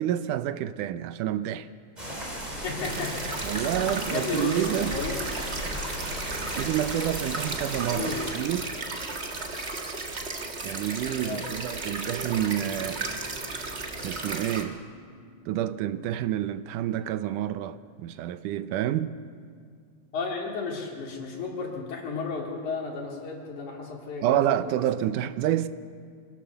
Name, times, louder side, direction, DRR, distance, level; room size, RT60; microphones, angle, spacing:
voice 1, 0.0-1.7 3.4-5.0 6.6-8.7 10.6-13.0 14.0-14.8 15.5-19.2 24.2-25.7, right 12 dB, 90° right, 2.3 m, -28 dB
sound 1, 2.0-8.3, equal, 15° right, 4.0 m, -36 dB
voice 2, 2.6-3.3 3.6-5.5 7.9-8.3 11.2-11.5 20.1-24.7, left 4 dB, 70° left, 4.3 m, -33 dB
sound 2, 2.8-14.6, right 3 dB, 40° right, 1.0 m, -35 dB
Harp, 12.1-18.2, right 5 dB, 55° right, 3.3 m, -48 dB
25.5 x 17.0 x 7.0 m
omnidirectional pair, 3.6 m